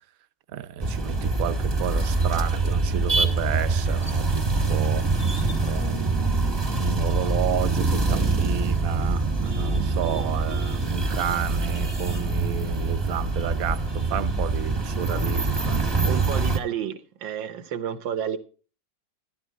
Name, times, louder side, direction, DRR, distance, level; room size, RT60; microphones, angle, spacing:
voice 1, 0.5-5.4 5.6-15.8, right 9 dB, 60° right, 1.0 m, -31 dB
sound 1, 0.8-16.6, right 3 dB, 15° right, 1.0 m, -24 dB
voice 2, 16.0-18.4, right 9 dB, 85° right, 1.8 m, -30 dB
12.5 x 12.0 x 4.1 m
omnidirectional pair, 2.0 m